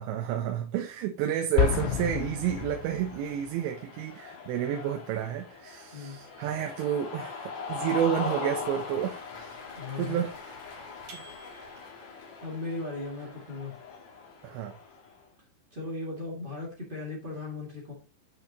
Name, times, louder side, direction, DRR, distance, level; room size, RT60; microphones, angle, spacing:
voice 1, 0.0-9.6 10.0-10.5 11.1-11.2 11.6-11.7 14.4-14.7, right 10 dB, 80° right, 3.0 m, -30 dB
Explosion, 1.6-3.4, left 11 dB, 80° left, 3.2 m, -29 dB
Cheering, 1.7-15.1, left 5 dB, 50° left, 2.4 m, -41 dB
voice 2, 9.7-10.2 12.4-13.7 15.7-17.9, left 3 dB, 25° right, 1.1 m, -37 dB
sound 1, 11.1-12.2, right 4 dB, 50° right, 2.6 m, -51 dB
8.8 x 6.1 x 3.0 m
omnidirectional pair, 5.2 m